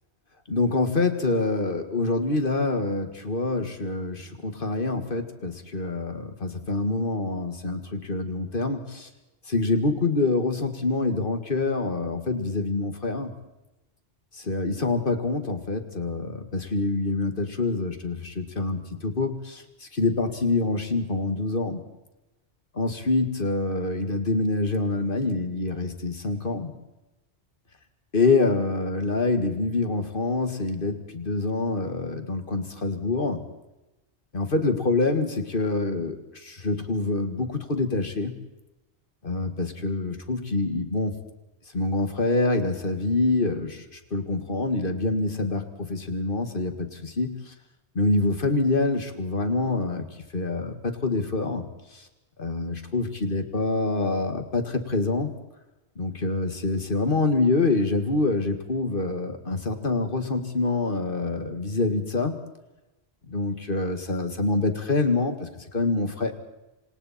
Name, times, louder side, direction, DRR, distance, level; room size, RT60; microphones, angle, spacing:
voice 1, 0.5-9.1 9.5-13.3 14.3-21.8 22.7-26.7 28.1-33.4 34.3-38.3 39.2-41.1 41.7-47.5 48.0-50.1 50.3-51.7 51.9-52.0 52.4-55.3 56.0-62.3 63.3-66.3, left 3 dB, 50° left, 7 dB, 2.1 m, -26 dB
27.0 x 26.5 x 4.3 m, 0.97 s
omnidirectional pair, 1.1 m